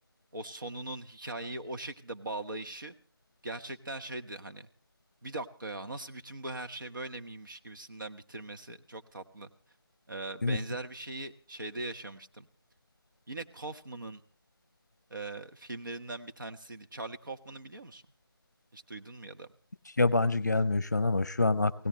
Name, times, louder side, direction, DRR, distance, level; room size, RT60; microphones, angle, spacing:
voice 1, 0.3-2.9 3.4-4.7 5.2-9.5 10.1-12.5 13.3-14.2 15.1-18.0 18.7-19.5, right 2 dB, 55° right, 6 dB, 1.2 m, -40 dB
voice 2, 20.0-21.9, left 2 dB, 45° left, 18 dB, 0.7 m, -26 dB
27.0 x 17.0 x 3.2 m, 0.37 s
figure-of-eight pair, 165°, 13 cm